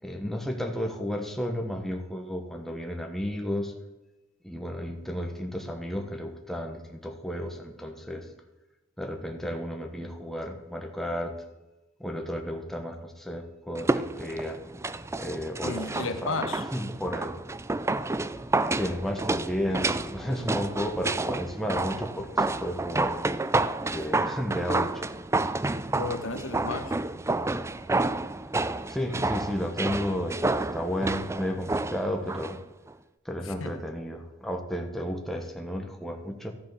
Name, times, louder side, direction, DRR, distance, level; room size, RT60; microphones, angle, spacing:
voice 1, 0.0-3.7 4.4-8.3 9.0-11.3 12.0-14.6 15.2-16.4 16.7-17.3 18.7-23.2 23.9-25.1 28.9-32.6 33.2-36.5, equal, ahead, 3 dB, 1.3 m, -33 dB
sound 1, 13.7-32.6 32.9-33.0, right 2 dB, 15° right, 0.4 m, -30 dB
voice 2, 15.6-16.6 24.3-24.4 25.9-27.0 33.5-33.8, left 3 dB, 70° left, 8 dB, 1.2 m, -33 dB
14.0 x 7.5 x 6.9 m, 1.0 s
head